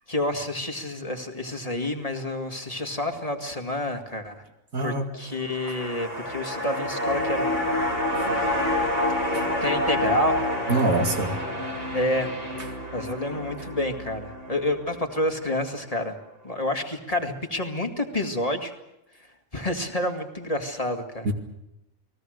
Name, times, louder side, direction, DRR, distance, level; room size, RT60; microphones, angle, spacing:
voice 1, 0.1-4.3 4.8-7.8 8.1-8.7 9.6-10.4 11.9-12.3 12.9-16.2 16.4-18.7 19.5-21.3, left 1 dB, 25° left, 4 dB, 2.1 m, -29 dB
voice 2, 4.7-5.0 8.1-8.2 9.3-9.4 10.7-11.4 21.2-21.3, right 2 dB, 90° right, 4 dB, 2.8 m, -24 dB
sound 1, 5.3-15.7 16.0-16.1, left 1 dB, 35° right, 5.3 m, -28 dB
29.5 x 20.0 x 6.5 m, 0.88 s
omnidirectional pair, 1.4 m